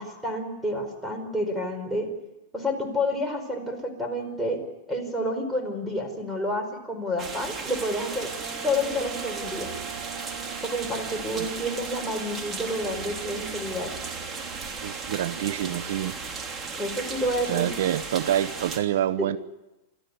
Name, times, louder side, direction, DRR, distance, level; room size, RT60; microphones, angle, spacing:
voice 1, 0.0-2.1 2.5-4.6 4.9-8.3 8.6-9.7 10.6-13.9 16.8-17.7 19.2-19.3, left 1 dB, 5° right, 4 dB, 4.9 m, -29 dB
sound 1, 7.2-18.8, right 4 dB, 25° right, 3.1 m, -36 dB
Wind instrument woodwind instrument, 8.2-15.7, right 9 dB, 55° right, 4.0 m, -43 dB
voice 2, 14.8-16.2 17.4-19.4, right 11 dB, 75° right, 15 dB, 0.8 m, -27 dB
30.0 x 13.0 x 9.6 m, 0.99 s
hypercardioid pair, 135°, 0 cm